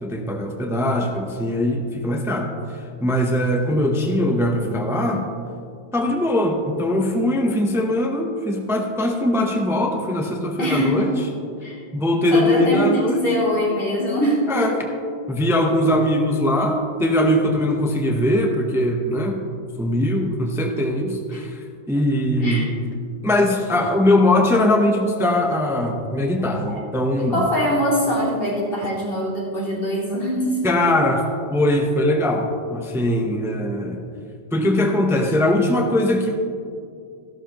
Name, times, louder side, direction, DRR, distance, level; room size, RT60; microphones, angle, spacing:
voice 1, 0.0-2.5 3.0-5.3 5.9-11.1 11.9-13.3 14.5-14.8 15.3-19.4 19.8-22.7 23.2-27.4 30.6-34.0 34.5-36.3, left 1 dB, 5° right, 2 dB, 0.7 m, -21 dB
voice 2, 10.6-11.1 11.6-11.8 12.3-14.7 22.4-22.7 26.7-26.8 27.2-30.6, equal, 65° left, -6 dB, 3.3 m, -23 dB
14.0 x 12.0 x 3.0 m, 2.3 s
omnidirectional pair, 1.0 m